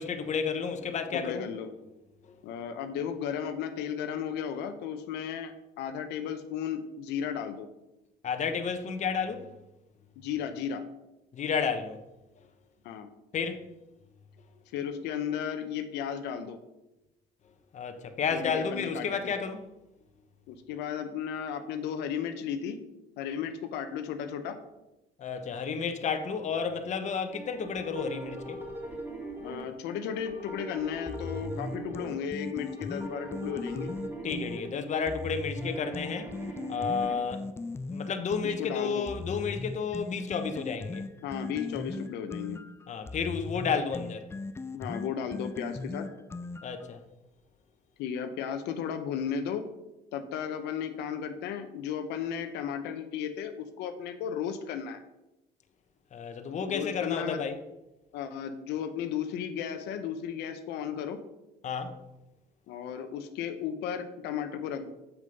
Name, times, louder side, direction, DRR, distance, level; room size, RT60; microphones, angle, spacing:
voice 1, 0.0-1.5 2.2-2.4 8.2-9.6 11.3-12.0 13.3-13.7 17.7-19.7 25.2-28.6 34.2-36.4 36.7-37.5 37.9-41.0 42.9-44.3 46.6-47.0 56.1-57.6 61.6-62.0, left 6 dB, 45° left, 1.0 m, -31 dB
voice 2, 1.1-1.7 2.4-7.7 10.2-10.8 12.8-13.1 14.7-16.6 18.3-19.3 20.5-22.8 23.2-24.6 29.4-33.9 38.4-39.1 41.2-42.6 44.7-46.1 48.0-49.6 50.1-55.0 56.7-57.4 58.1-61.2 62.7-64.9, left 8 dB, 90° left, 0.8 m, -34 dB
sound 1, 27.3-37.2, right 1 dB, 15° right, 2.7 m, -41 dB
sound 2, 31.1-34.6 35.1-38.6 39.1-46.9, left 3 dB, 15° left, 0.4 m, -38 dB
7.5 x 6.4 x 5.3 m
cardioid pair, 110°, 17 cm